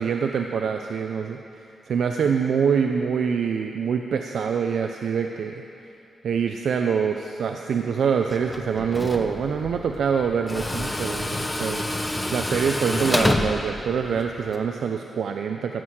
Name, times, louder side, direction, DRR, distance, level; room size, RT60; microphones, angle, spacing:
voice 1, 0.0-1.4 1.9-5.6 6.2-11.8 12.3-15.8, right 6 dB, 80° right, 4 dB, 0.5 m, -25 dB
Tools, 8.3-14.6, left 1 dB, 15° left, 1.0 m, -28 dB
15.0 x 6.3 x 7.8 m, 2.9 s
cardioid pair, 85°, 0 cm